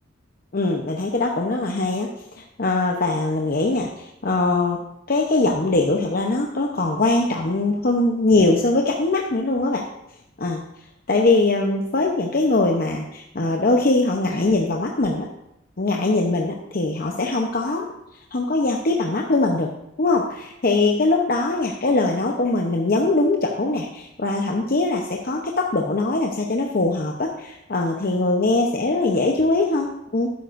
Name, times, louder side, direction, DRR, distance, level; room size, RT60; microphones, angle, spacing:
voice 1, 0.5-2.1 2.4-4.8 5.1-9.8 10.4-10.6 11.1-15.3 15.8-17.9 18.3-19.7 20.0-30.3, left 2 dB, 50° left, 1 dB, 0.8 m, -21 dB
12.0 x 9.3 x 2.6 m, 0.84 s
head